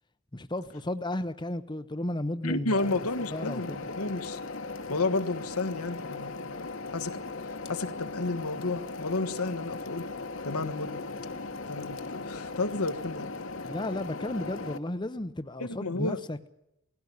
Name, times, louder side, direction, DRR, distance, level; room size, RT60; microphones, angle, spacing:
voice 1, 0.3-2.9 3.3-3.8 13.6-16.5, left 1 dB, 20° left, 0.7 m, -34 dB
voice 2, 2.4-4.4 4.9-6.6 6.9-7.2 7.7-10.1 10.4-11.1 11.7-13.3 15.6-16.2, left 3 dB, 85° left, 1.5 m, -31 dB
sound 1, 2.8-14.8, left 3 dB, 60° left, 1.4 m, -38 dB
19.0 x 16.5 x 9.6 m
head